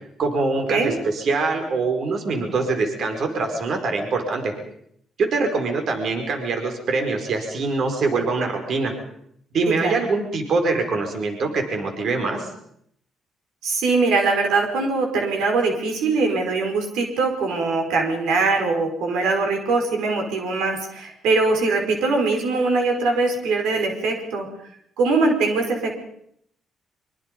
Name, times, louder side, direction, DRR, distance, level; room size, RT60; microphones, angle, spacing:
voice 1, 0.2-4.5 5.2-8.9 9.5-12.5, right 3 dB, 60° right, 4 dB, 5.0 m, -24 dB
voice 2, 13.6-24.5 25.0-25.9, right 3 dB, 90° right, 3 dB, 5.2 m, -22 dB
25.0 x 24.5 x 5.5 m, 0.70 s
cardioid pair, 90°, 0 cm